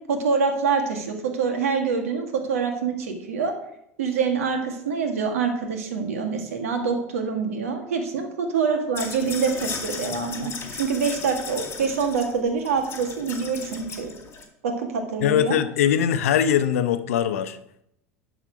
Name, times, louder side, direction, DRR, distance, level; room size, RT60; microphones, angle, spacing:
voice 1, 0.1-3.5 4.0-14.1 14.6-15.6, right 5 dB, 80° right, 4 dB, 1.7 m, -25 dB
sound 1, 9.0-14.4, left 5 dB, 30° left, 2.2 m, -36 dB
voice 2, 10.4-10.7 15.2-17.6, left 9 dB, 75° left, 11 dB, 0.7 m, -22 dB
11.5 x 4.1 x 5.1 m, 0.76 s
hypercardioid pair, 85°, 8 cm